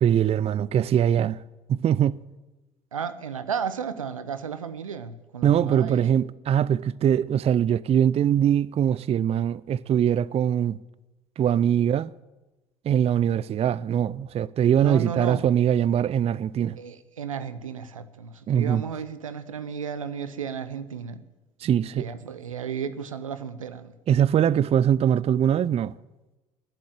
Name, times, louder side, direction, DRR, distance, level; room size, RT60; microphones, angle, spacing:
voice 1, 0.0-1.4 1.7-2.2 5.4-10.8 11.4-12.1 12.9-16.8 18.5-18.8 21.6-22.1 24.1-26.0, right 9 dB, 40° right, 0.5 m, -22 dB
voice 2, 2.9-6.1 14.8-15.4 16.8-21.2 21.9-23.9, right 7 dB, 90° right, 0.8 m, -33 dB
19.5 x 7.7 x 9.2 m
hypercardioid pair, 55°, 17 cm